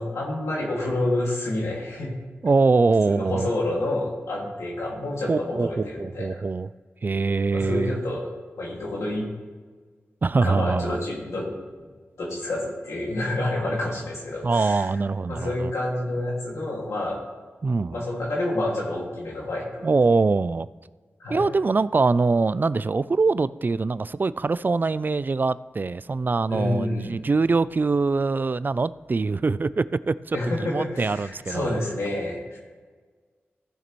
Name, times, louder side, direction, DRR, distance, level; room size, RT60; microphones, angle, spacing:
voice 1, 0.0-2.1 3.1-6.4 7.5-8.2 8.6-9.3 10.4-11.6 12.2-14.9 15.3-17.2 17.9-19.9 21.2-21.5 26.5-27.3 30.3-32.6, left 1 dB, 85° left, -4 dB, 2.2 m, -28 dB
voice 2, 2.4-3.5 5.3-6.7 7.0-8.0 10.2-11.0 14.4-15.7 17.6-18.0 19.8-20.7 21.3-31.8, right 4 dB, 45° right, 17 dB, 0.3 m, -23 dB
15.0 x 6.7 x 3.1 m, 1.4 s
cardioid pair, 45°, 5 cm